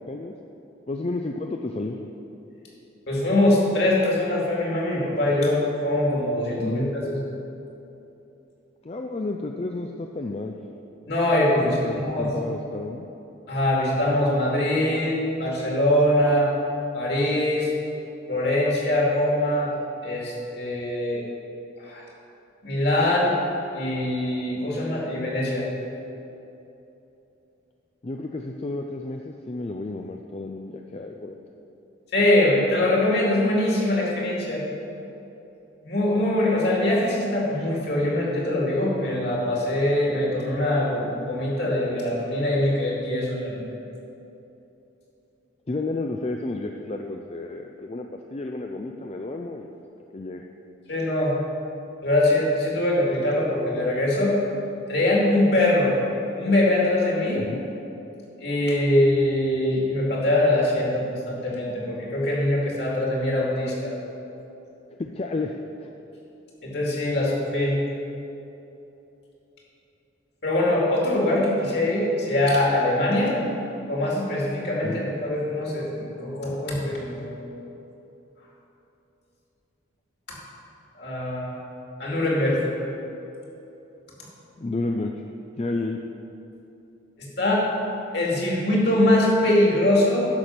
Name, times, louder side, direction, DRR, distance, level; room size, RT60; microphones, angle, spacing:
voice 1, 0.9-2.0 6.6-6.9 8.8-10.6 11.6-13.1 28.0-31.4 45.7-49.7 50.1-50.4 57.4-57.6 64.9-65.9 74.8-75.0 84.6-85.1 85.6-86.0, left 2 dB, 30° left, 3 dB, 0.4 m, -31 dB
voice 2, 3.1-7.2 11.1-12.4 13.5-16.5 16.9-17.7 18.3-19.7 20.0-21.2 21.8-22.0 22.6-23.3 23.7-25.7 32.1-34.6 35.8-43.6 50.9-51.3 52.0-54.4 54.9-55.9 56.4-57.4 58.4-63.9 66.6-67.8 70.4-73.4 73.9-77.5 81.0-81.6 82.0-82.6 87.4-87.6 88.1-90.3, left 1 dB, 55° left, -4 dB, 2.5 m, -23 dB
10.5 x 6.9 x 5.9 m, 3.0 s
head